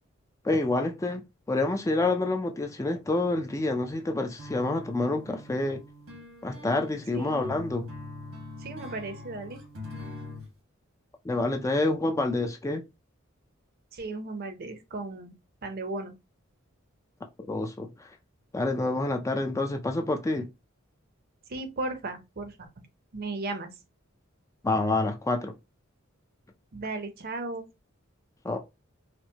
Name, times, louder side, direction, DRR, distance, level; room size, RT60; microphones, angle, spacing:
voice 1, 0.4-1.2 1.5-5.8 6.4-7.9 11.2-12.8 17.5-17.9 18.5-20.5 24.6-25.5 28.4-28.6, left 2 dB, 15° left, 0.3 m, -27 dB
sound 1, 4.4-10.5, left 2 dB, 85° right, 1.3 m, -43 dB
voice 2, 7.1-7.5 8.6-9.6 13.9-15.3 15.6-16.1 21.5-22.7 23.1-23.7 26.7-27.6, right 2 dB, 50° right, 0.6 m, -35 dB
4.4 x 2.1 x 2.8 m
head